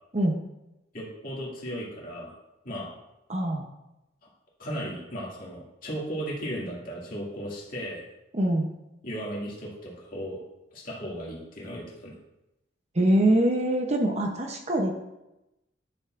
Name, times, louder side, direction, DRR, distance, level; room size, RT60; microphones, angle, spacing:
voice 1, 0.9-2.3 2.6-2.9 4.6-8.0 9.0-10.4 10.7-12.1, equal, 45° left, -5 dB, 2.3 m, -36 dB
voice 2, 3.3-3.7 8.3-8.7 12.9-14.9, right 1 dB, 35° right, 2 dB, 0.8 m, -23 dB
9.8 x 7.1 x 2.5 m, 0.94 s
head